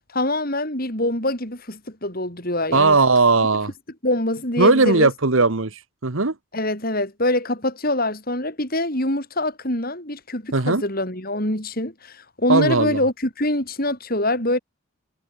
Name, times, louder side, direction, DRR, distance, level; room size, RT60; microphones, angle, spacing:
voice 1, 0.1-3.0 3.4-3.5 4.0-5.1 6.5-14.6, left 1 dB, 40° left, 6.4 m, -24 dB
voice 2, 2.7-3.7 4.6-6.3 10.5-10.8 12.5-13.0, right 3 dB, 65° right, 1.3 m, -18 dB
head